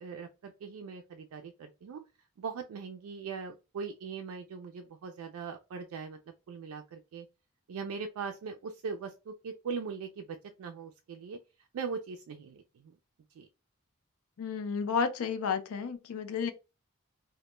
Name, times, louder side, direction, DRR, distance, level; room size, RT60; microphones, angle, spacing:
voice 1, 0.0-2.0 2.4-6.2 6.5-7.3 7.7-11.4 11.7-12.9 13.4-13.5, right 5 dB, 90° right, 0.3 m, -40 dB
voice 2, 14.4-16.5, left 6 dB, 85° left, 0.4 m, -32 dB
2.1 x 2.1 x 2.9 m
head